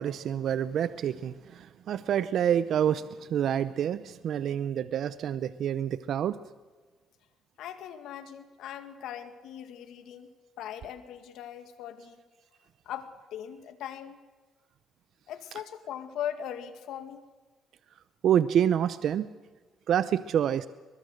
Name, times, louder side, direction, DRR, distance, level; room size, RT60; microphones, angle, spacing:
voice 1, 0.0-6.4 18.2-19.3 19.9-20.7, right 9 dB, 70° right, 14 dB, 0.7 m, -27 dB
voice 2, 7.6-10.3 10.6-12.2 12.9-14.2 15.3-17.2, left 10 dB, 85° left, 9 dB, 2.0 m, -39 dB
23.5 x 21.5 x 6.5 m, 1.3 s
cardioid pair, 90°, 0 cm